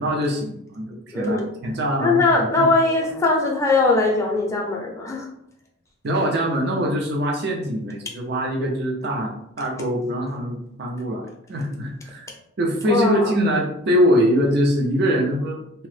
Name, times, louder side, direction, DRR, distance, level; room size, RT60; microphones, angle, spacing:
voice 1, 0.0-2.7 6.0-12.3 12.6-15.9, equal, 55° right, 0 dB, 0.5 m, -23 dB
voice 2, 1.1-1.5 2.0-5.2 12.9-13.3, left 3 dB, 15° left, -1 dB, 0.5 m, -20 dB
2.8 x 2.0 x 3.2 m, 0.75 s
head